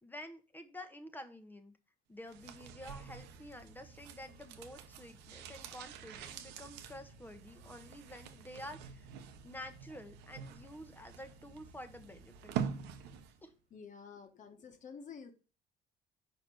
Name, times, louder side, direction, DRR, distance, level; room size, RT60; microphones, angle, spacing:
voice 1, 0.0-1.7 2.1-9.1 9.4-12.5 13.4-13.5, left 1 dB, 10° left, 0.9 m, -49 dB
sound 1, 2.2-13.5 13.7-13.8, right 8 dB, 90° right, 0.8 m, -45 dB
voice 2, 13.7-15.3, left 6 dB, 45° left, 1.4 m, -50 dB
5.2 x 4.8 x 6.2 m
cardioid pair, 110°, 17 cm